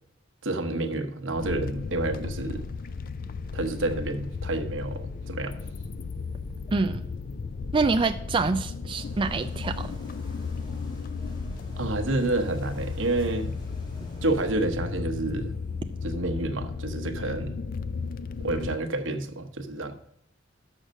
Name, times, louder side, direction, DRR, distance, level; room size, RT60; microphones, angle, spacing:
voice 1, 0.4-2.6 3.5-5.5 11.8-13.5 14.2-15.5 16.0-17.6 18.4-19.9, right 2 dB, 80° right, 7 dB, 1.0 m, -29 dB
sound 1, 1.4-18.8, left 4 dB, 45° left, 0.4 m, -34 dB
voice 2, 6.7-7.0 7.7-9.9, right 4 dB, 25° right, 7 dB, 0.3 m, -26 dB
sound 2, 8.9-14.4, right 1 dB, 25° left, 2.5 m, -49 dB
6.4 x 6.4 x 6.3 m, 0.73 s
head